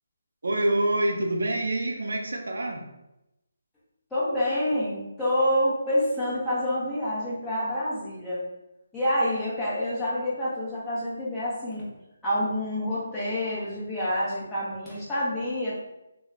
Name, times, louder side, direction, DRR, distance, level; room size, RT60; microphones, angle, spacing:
voice 1, 0.4-2.9, right 1 dB, 80° right, 2 dB, 0.6 m, -26 dB
voice 2, 4.1-8.4 8.9-11.9 12.2-15.8, left 1 dB, 5° left, -10 dB, 1.0 m, -27 dB
3.0 x 2.2 x 3.8 m, 0.91 s
hypercardioid pair, 165°, 0 cm